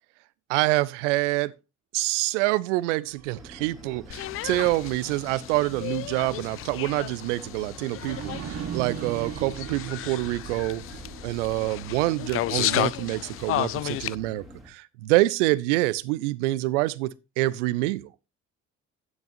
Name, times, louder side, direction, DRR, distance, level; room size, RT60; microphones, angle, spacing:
voice 1, 0.5-1.5 1.9-10.8 11.2-18.1, right 18 dB, 70° right, 0.6 m, -26 dB
sound 1, 3.0-6.0 6.4-6.5 7.9-13.0, right 8 dB, 40° right, 1.2 m, -40 dB
sound 2, 3.3-14.7, equal, ahead, 2.3 m, -47 dB
sound 3, 4.1-14.2, left 15 dB, 40° left, 0.4 m, -33 dB
11.0 x 9.3 x 2.6 m
figure-of-eight pair, 50°, 37 cm